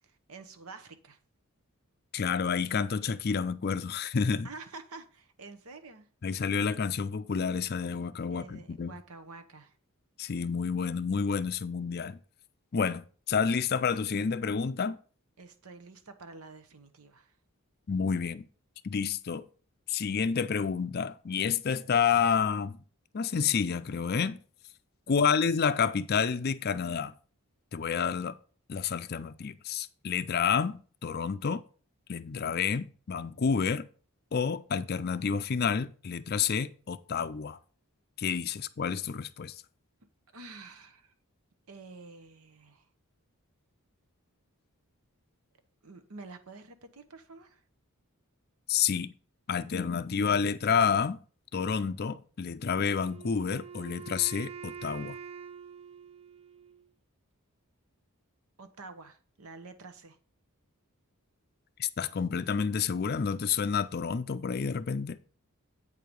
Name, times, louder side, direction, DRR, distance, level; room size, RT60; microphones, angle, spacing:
voice 1, 0.0-1.2 4.4-6.1 8.3-9.8 15.4-17.3 25.2-25.3 40.3-41.1 41.7-42.9 45.8-47.6 58.6-60.2, right 3 dB, 75° right, 1.0 m, -48 dB
voice 2, 2.1-4.5 6.2-8.9 10.2-12.2 12.7-15.0 17.9-18.4 18.8-19.5 19.9-22.8 23.1-24.4 25.1-27.1 27.7-28.4 28.7-31.6 32.1-33.9 34.3-37.6 38.2-39.5 48.7-49.1 49.5-51.2 51.5-55.2 61.8-65.2, left 6 dB, 45° left, 0.4 m, -29 dB
Wind instrument woodwind instrument, 52.8-56.9, right 7 dB, 25° right, 0.3 m, -45 dB
8.4 x 4.7 x 5.2 m
head